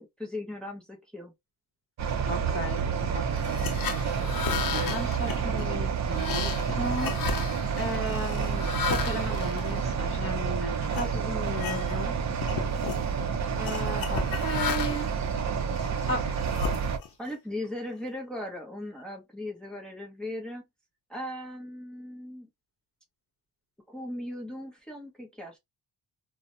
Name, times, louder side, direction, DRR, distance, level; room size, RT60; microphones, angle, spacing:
voice 1, 0.0-1.3 5.3-5.9 17.2-20.6 21.1-22.5 23.9-25.6, left 1 dB, ahead, 0.6 m, -38 dB
sound 1, 2.0-17.0, right 6 dB, 45° right, 0.5 m, -29 dB
voice 2, 2.3-2.8 3.1-7.5 7.8-12.1 13.6-15.1 16.1-16.3, equal, 35° left, 1.2 m, -35 dB
sound 2, 3.4-10.4 10.9-11.1 11.5-12.1 12.4-13.0 13.6-15.2 15.7-17.3, left 6 dB, 60° left, 0.6 m, -34 dB
2.7 x 2.1 x 2.5 m
cardioid pair, 130°, 39 cm